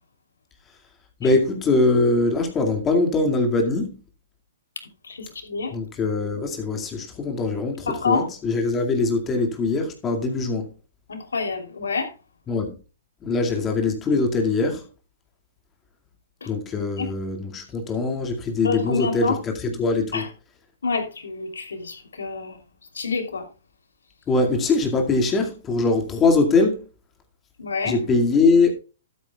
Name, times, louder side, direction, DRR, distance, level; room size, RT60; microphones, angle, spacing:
voice 1, 1.2-4.0 5.7-10.7 12.5-12.7 13.2-14.8 16.5-20.2 24.3-26.8 27.8-28.7, left 3 dB, 20° left, 2.1 m, -22 dB
voice 2, 5.0-5.7 7.9-8.3 11.1-12.1 16.4-16.5 17.0-17.1 18.6-19.3 20.1-20.3 20.8-22.6 22.9-23.4 27.6-27.9, left 4 dB, 85° left, 3.2 m, -27 dB
12.5 x 9.1 x 2.3 m
hypercardioid pair, 130°, 0 cm